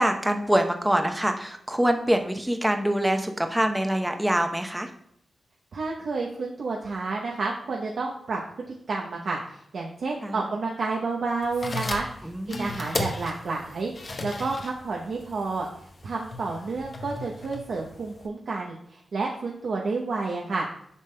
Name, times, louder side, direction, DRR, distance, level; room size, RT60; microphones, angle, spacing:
voice 1, 0.0-4.9 10.2-10.4 12.2-12.8, right 1 dB, 5° right, 5 dB, 0.7 m, -25 dB
voice 2, 5.7-15.7 16.0-20.7, right 3 dB, 70° right, -1 dB, 0.7 m, -30 dB
sound 1, 11.4-18.3, left 2 dB, 45° left, 0.8 m, -36 dB
8.2 x 5.3 x 2.2 m, 0.72 s
cardioid pair, 85°, 0 cm